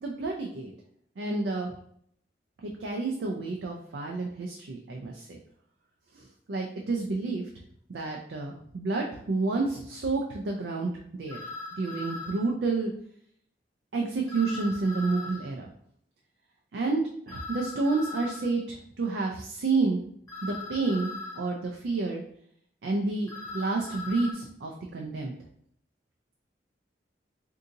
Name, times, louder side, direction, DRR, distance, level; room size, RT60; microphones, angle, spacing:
voice 1, 0.0-0.7 1.2-1.7 2.8-5.4 6.1-7.4 7.9-11.4 11.7-12.9 13.9-15.7 16.7-20.0 20.4-21.1 21.4-22.2 22.8-25.3, right 3 dB, 70° right, 0 dB, 0.4 m, -30 dB
sound 1, 11.3-12.4 14.3-15.4 17.3-18.4 20.3-21.4 23.3-24.3, left 3 dB, 20° left, 0.7 m, -39 dB
2.7 x 2.6 x 3.6 m, 0.67 s
head